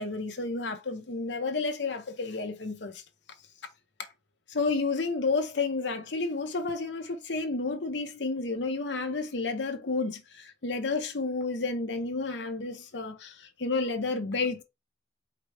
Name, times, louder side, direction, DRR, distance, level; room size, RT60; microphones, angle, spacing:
voice 1, 0.0-3.0 4.5-14.6, left 3 dB, 75° left, 0.9 m, -31 dB
4.8 x 2.2 x 4.8 m
head